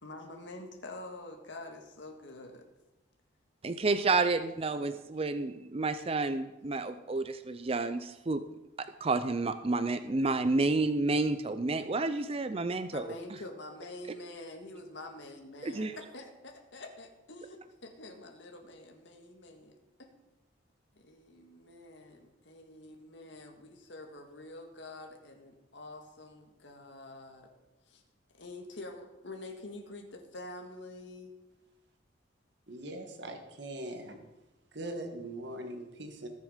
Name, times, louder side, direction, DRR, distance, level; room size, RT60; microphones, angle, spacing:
voice 1, 0.0-2.7 4.6-5.0 12.9-19.7 20.0-20.1 20.9-27.5 27.9-28.0 28.4-31.3, left 2 dB, 65° left, 3 dB, 1.9 m, -47 dB
voice 2, 3.6-8.4 8.8-13.0 15.6-15.9, right 3 dB, 30° right, 10 dB, 0.5 m, -30 dB
voice 3, 32.7-34.2 34.7-36.3, right 1 dB, 60° right, 4 dB, 1.7 m, -41 dB
20.0 x 6.8 x 5.1 m, 1.0 s
head